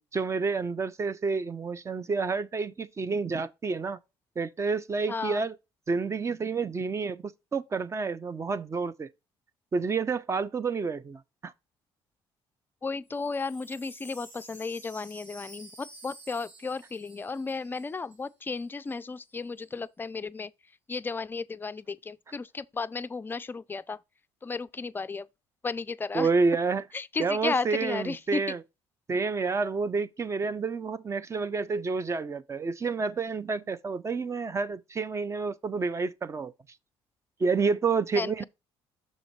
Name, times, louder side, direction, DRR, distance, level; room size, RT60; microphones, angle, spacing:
voice 1, 0.0-4.0 4.4-5.6 5.9-9.1 9.7-11.5 26.1-26.8 27.2-28.6 29.1-36.5 37.4-38.4, right 4 dB, 25° right, 0.6 m, -29 dB
voice 2, 5.1-5.5 12.8-20.5 20.9-24.0 24.4-25.3 25.6-26.3 26.9-28.4 38.2-38.4, left 4 dB, 20° left, 0.4 m, -34 dB
Wind chime, 13.1-18.3 18.5-18.6 18.9-19.3, right 1 dB, 80° right, 4.3 m, -51 dB
6.5 x 3.8 x 4.5 m
cardioid pair, 90°, 10 cm